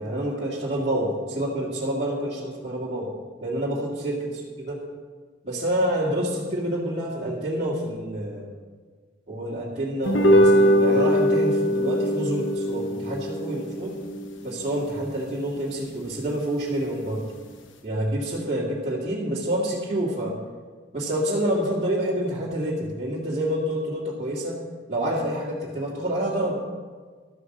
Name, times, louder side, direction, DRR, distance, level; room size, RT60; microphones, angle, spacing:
voice 1, 0.0-3.1 3.4-4.2 4.7-4.8 5.4-8.5 9.3-14.0 14.4-17.2 17.8-20.3 20.9-24.6 24.9-26.6, right 1 dB, 30° right, -7 dB, 2.2 m, -27 dB
sound 1, 10.1-16.6, equal, 80° left, 1.0 m, -23 dB
12.5 x 8.3 x 6.6 m, 1.5 s
head